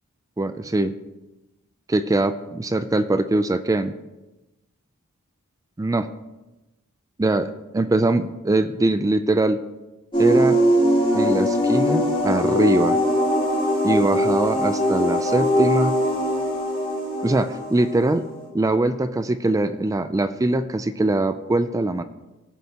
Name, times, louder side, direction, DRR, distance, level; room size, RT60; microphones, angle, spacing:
voice 1, 0.4-0.9 1.9-3.9 5.8-6.1 7.2-9.6 10.2-10.6 11.1-13.0 13.8-16.0 17.2-18.3 18.5-22.0, right 2 dB, 15° right, 11 dB, 0.3 m, -22 dB
sound 1, 10.1-18.5, equal, 20° left, 2.8 m, -21 dB
17.0 x 6.9 x 2.9 m, 1.0 s
head